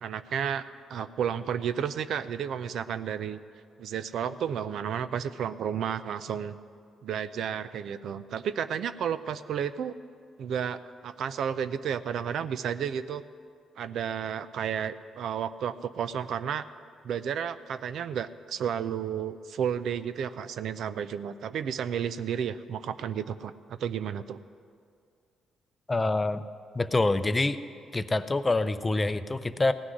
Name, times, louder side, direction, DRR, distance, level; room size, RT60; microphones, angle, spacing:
voice 1, 0.0-3.4 3.8-6.6 7.0-9.9 10.4-13.2 13.8-16.6 17.0-23.5 23.8-24.4, right 8 dB, 70° right, 14 dB, 0.5 m, -32 dB
voice 2, 25.9-26.4 26.7-27.6 27.9-29.7, left 2 dB, 20° left, 12 dB, 0.5 m, -26 dB
16.5 x 6.1 x 9.7 m, 2.2 s
cardioid pair, 90°, 0 cm